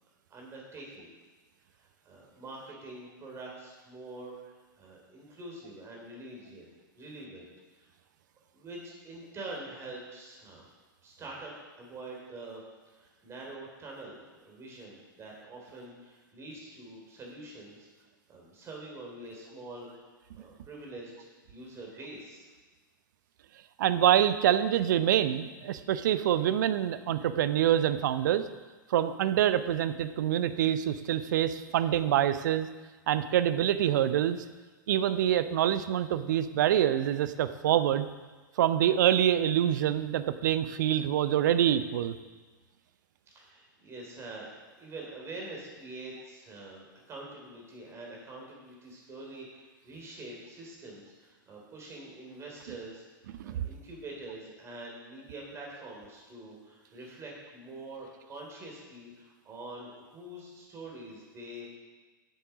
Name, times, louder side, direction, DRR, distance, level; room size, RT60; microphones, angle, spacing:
voice 1, 0.3-1.2 1.8-6.7 7.0-7.8 8.5-10.6 11.0-11.5 11.8-17.9 18.3-20.1 20.3-22.5 43.3-44.5 44.8-53.0 53.4-61.8, right 2 dB, 25° right, -2 dB, 3.3 m, -45 dB
voice 2, 23.8-28.5 28.9-32.7 33.1-34.4 34.9-38.1 38.6-42.1 53.4-53.6, right 11 dB, 60° right, 13 dB, 0.6 m, -26 dB
8.0 x 7.8 x 6.1 m, 1.3 s
figure-of-eight pair, 100°, 11 cm